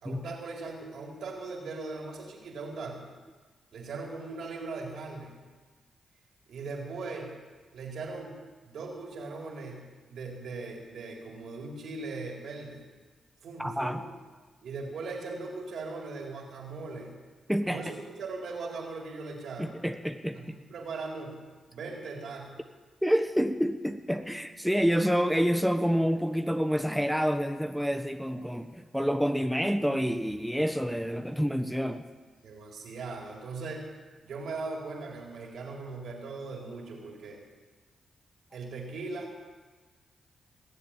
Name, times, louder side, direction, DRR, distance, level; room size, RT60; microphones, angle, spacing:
voice 1, 0.0-3.1 3.7-5.3 6.5-7.3 7.7-8.4 8.6-12.8 13.4-14.0 14.6-17.1 17.7-19.8 20.4-21.4 21.7-22.6 32.4-33.8 34.2-37.4 38.5-39.3, right 3 dB, 70° right, 0 dB, 4.1 m, -39 dB
voice 2, 13.6-14.0 17.5-17.8 19.6-20.6 23.0-32.0, equal, ahead, 6 dB, 1.2 m, -28 dB
20.0 x 7.7 x 8.9 m, 1.3 s
supercardioid pair, 45°, 0 cm